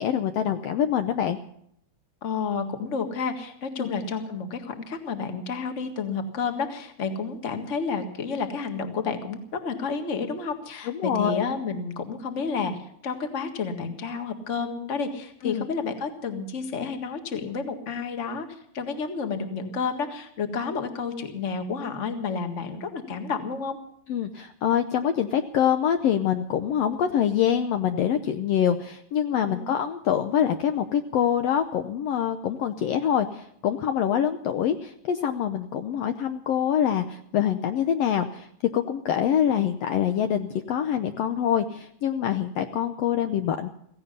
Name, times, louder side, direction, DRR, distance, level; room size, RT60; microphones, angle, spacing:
voice 1, 0.0-1.4 3.8-3.9 10.9-11.4 15.4-15.7 24.1-38.5 38.7-43.7, left 9 dB, 70° left, 7 dB, 1.7 m, -25 dB
voice 2, 2.2-9.4 9.6-12.7 13.0-18.5 18.7-23.8 29.4-29.7, left 5 dB, 30° left, 6 dB, 1.6 m, -30 dB
16.5 x 16.0 x 5.4 m, 0.70 s
omnidirectional pair, 3.3 m